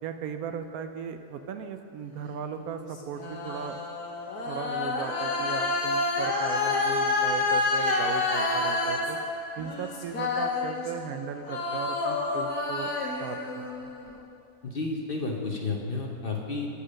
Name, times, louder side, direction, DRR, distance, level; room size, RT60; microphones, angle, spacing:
voice 1, 0.0-3.8 4.5-9.2 9.6-12.9 13.2-13.9, right 7 dB, 75° right, 8 dB, 1.0 m, -37 dB
sound 1, 2.5-11.2 11.5-14.1, left 3 dB, 80° left, 1.7 m, -29 dB
voice 2, 14.6-16.7, left 3 dB, 45° left, 0 dB, 0.8 m, -31 dB
8.6 x 8.2 x 6.3 m, 2.7 s
omnidirectional pair, 1.6 m